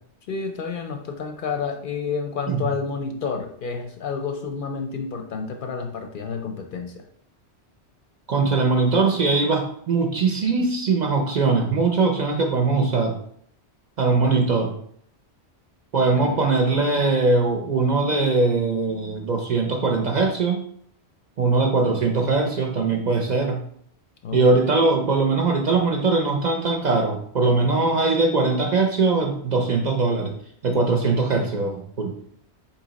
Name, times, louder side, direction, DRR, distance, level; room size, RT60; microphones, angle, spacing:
voice 1, 0.3-7.0 16.0-16.4 24.2-24.5, left 5 dB, 60° left, 4 dB, 0.6 m, -30 dB
voice 2, 8.3-13.2 14.0-14.7 15.9-20.6 21.4-23.6 24.3-30.3 30.6-32.1, right 3 dB, 55° right, 2 dB, 0.5 m, -21 dB
4.1 x 2.8 x 3.9 m, 0.65 s
omnidirectional pair, 1.1 m